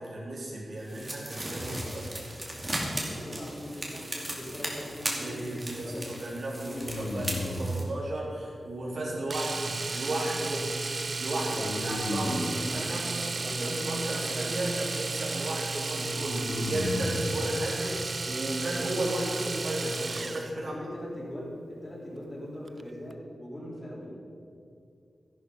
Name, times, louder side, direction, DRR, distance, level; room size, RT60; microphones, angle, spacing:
voice 1, 0.0-2.2 5.2-10.7 11.2-13.2 13.4-20.7, right 1 dB, 65° right, -5 dB, 3.7 m, -34 dB
sound 1, 0.8-7.8, right 1 dB, 20° right, 2.5 m, -37 dB
voice 2, 3.1-6.0 6.7-7.0 11.5-11.8 12.1-14.7 20.5-24.2, equal, 25° left, -5 dB, 4.2 m, -41 dB
sound 2, 4.2-4.8 6.8-7.8 11.6-12.6 15.9-17.2, left 1 dB, 70° left, 1.9 m, -34 dB
Domestic sounds home sounds, 9.3-20.5 22.7-22.8 23.1-23.2, right 3 dB, 45° right, 0.5 m, -34 dB
13.0 x 11.5 x 5.5 m, 2.4 s
wide cardioid pair, 110°, 0 cm